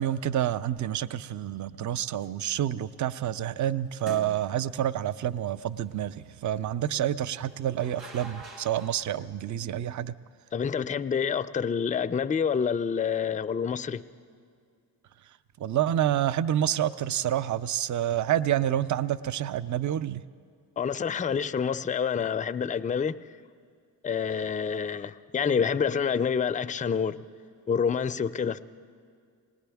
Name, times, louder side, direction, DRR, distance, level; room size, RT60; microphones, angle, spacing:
voice 1, 0.0-10.1 15.6-20.2, right 11 dB, 45° right, 0.5 m, -28 dB
sound 1, 2.2-2.5 4.0-4.8 7.3-9.1, right 2 dB, 85° right, 1.7 m, -45 dB
voice 2, 10.5-14.0 20.8-23.2 24.0-27.2 27.7-28.6, left 6 dB, 20° left, 0.4 m, -27 dB
19.5 x 18.5 x 3.5 m
supercardioid pair, 50°, 44 cm